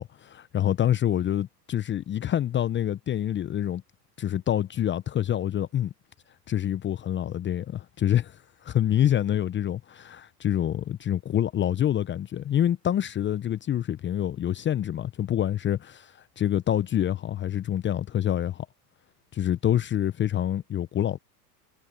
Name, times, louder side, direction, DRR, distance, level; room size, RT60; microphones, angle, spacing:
voice 1, 0.0-3.8 4.2-5.9 6.5-18.7 19.3-21.2, left 11 dB, 25° left, 0.8 m, -26 dB
hypercardioid pair, 95°, 48 cm